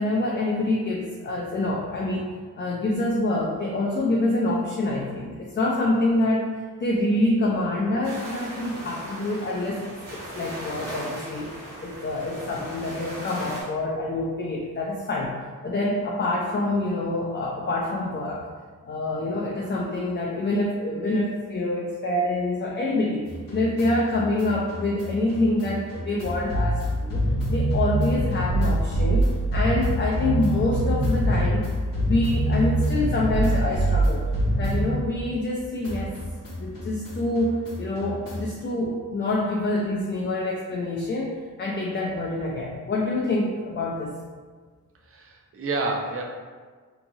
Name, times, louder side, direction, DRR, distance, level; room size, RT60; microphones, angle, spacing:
voice 1, 0.0-6.5 6.8-11.5 11.8-15.3 15.6-18.4 18.9-23.2 23.5-27.2 27.5-29.3 29.5-31.7 32.0-34.3 34.6-36.2 36.6-44.1, left 2 dB, 35° left, -3 dB, 0.4 m, -26 dB
sound 1, 8.0-13.6, equal, 70° right, 1.1 m, -38 dB
sound 2, 23.3-35.5 35.8-38.6, right 1 dB, 75° left, 0.9 m, -25 dB
voice 2, 45.1-46.2, right 3 dB, 40° right, 1 dB, 0.5 m, -29 dB
3.7 x 2.9 x 2.7 m, 1.5 s
wide cardioid pair, 135°, 33 cm